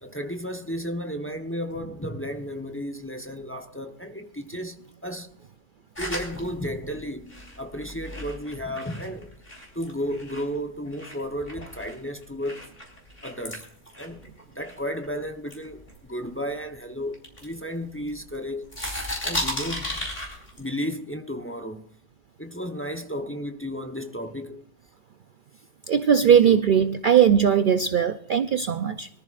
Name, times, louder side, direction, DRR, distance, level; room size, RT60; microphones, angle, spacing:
voice 1, 0.0-5.3 6.0-9.3 9.7-12.6 13.2-13.7 14.0-14.2 14.5-18.7 19.2-20.1 20.6-21.9 22.4-24.6 26.2-26.6, equal, 10° left, 0.8 m, -33 dB
sound 1, 6.0-10.5 10.9-15.1 15.5-16.7 17.1-18.4 18.6-20.7, left 1 dB, 35° left, 4.2 m, -35 dB
voice 2, 25.9-29.1, right 8 dB, 55° right, 0.6 m, -19 dB
23.5 x 14.0 x 2.5 m
omnidirectional pair, 1.3 m